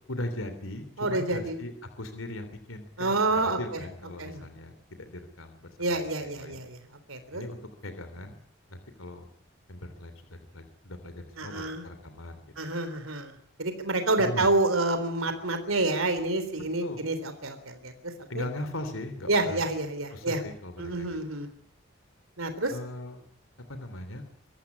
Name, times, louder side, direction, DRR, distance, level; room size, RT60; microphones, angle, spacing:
voice 1, 0.1-6.7 7.3-8.4 8.7-9.3 9.7-12.5 14.2-14.5 16.5-17.1 18.3-19.7 20.1-21.2 22.7-23.2 23.7-24.3, left 1 dB, 85° left, 8 dB, 3.2 m, -39 dB
voice 2, 1.0-1.6 3.0-3.6 4.2-4.4 5.8-6.8 7.1-7.4 11.4-11.8 12.6-13.3 13.6-17.9 18.4-18.5 19.3-20.4 20.8-21.5 22.4-22.7, right 2 dB, 90° right, 9 dB, 3.7 m, -28 dB
24.0 x 14.5 x 9.8 m, 0.64 s
head